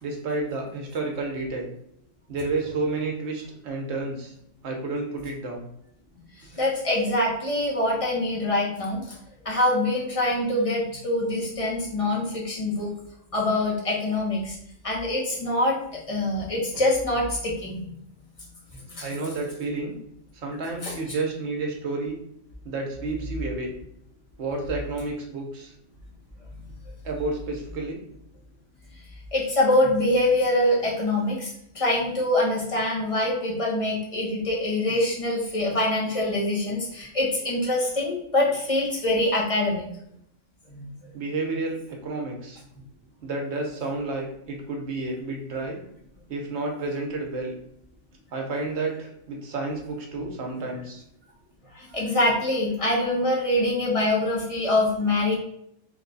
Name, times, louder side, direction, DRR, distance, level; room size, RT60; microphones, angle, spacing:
voice 1, 0.0-1.7 2.3-4.3 4.6-5.7 6.5-6.7 19.0-20.0 20.4-22.2 22.6-23.7 24.4-25.7 27.0-28.0 41.1-42.6 43.2-45.8 46.3-47.5 48.3-51.0, right 3 dB, 65° right, 1 dB, 1.0 m, -30 dB
voice 2, 6.6-9.0 9.4-12.9 13.3-14.6 14.8-15.7 16.1-17.8 18.9-19.1 20.8-20.9 29.3-39.9 40.8-40.9 51.7-55.4, left 1 dB, 30° left, -3 dB, 0.9 m, -24 dB
3.1 x 2.3 x 3.9 m, 0.72 s
omnidirectional pair, 1.3 m